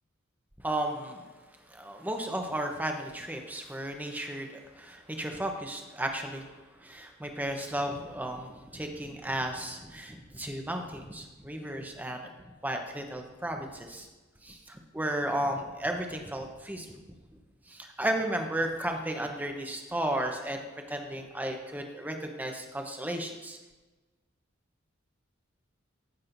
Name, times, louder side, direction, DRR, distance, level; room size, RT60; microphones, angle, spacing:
voice 1, 0.6-1.2 1.7-6.5 6.8-12.3 12.6-14.1 14.4-16.9 17.7-20.6 20.9-23.6, right 1 dB, 10° right, 3 dB, 0.9 m, -34 dB
15.0 x 6.3 x 2.7 m, 1.2 s
head